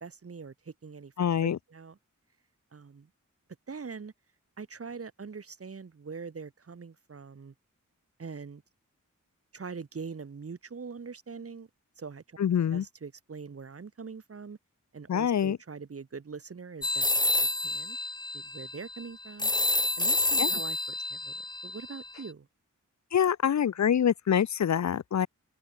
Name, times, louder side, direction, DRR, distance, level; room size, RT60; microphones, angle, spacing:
voice 1, 0.0-2.0 2.7-3.1 3.7-4.1 4.6-7.5 8.2-8.6 9.5-11.7 12.0-12.4 12.7-14.6 14.9-17.1 17.4-18.0 18.3-19.5 20.0-22.5, right 5 dB, 45° right, 1.0 m, -43 dB
voice 2, 1.2-1.6 12.4-12.8 15.1-15.6 20.4-20.5 23.1-25.3, left 8 dB, 60° left, 0.5 m, -25 dB
sound 1, 16.8-22.3, left 2 dB, 15° left, 0.7 m, -29 dB
wide cardioid pair, 65°, 31 cm